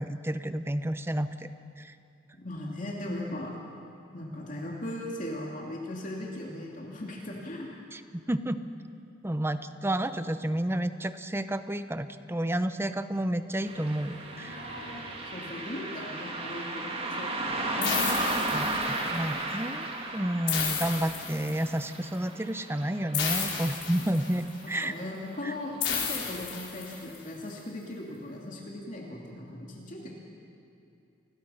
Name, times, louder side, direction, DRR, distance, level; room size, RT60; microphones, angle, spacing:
voice 1, 0.0-1.5 1.8-1.9 7.9-8.0 8.3-8.6 9.2-14.6 18.5-19.9 20.1-24.9 25.4-25.5, right 1 dB, 15° right, 11 dB, 0.7 m, -30 dB
voice 2, 2.3-3.6 4.1-7.7 15.3-18.5 24.8-30.1, left 1 dB, 45° left, -2 dB, 2.7 m, -38 dB
Car passing by, 13.6-24.4 24.7-24.8 25.8-25.9 26.4-26.5 27.0-27.1, right 2 dB, 30° right, 2.2 m, -35 dB
sound 1, 13.6-21.7, equal, 60° right, 6.0 m, -49 dB
sound 2, 17.8-19.2 20.5-21.8 23.1-24.5 25.8-27.2, left 7 dB, 85° left, 4.9 m, -32 dB
29.5 x 21.0 x 5.7 m, 2.6 s
head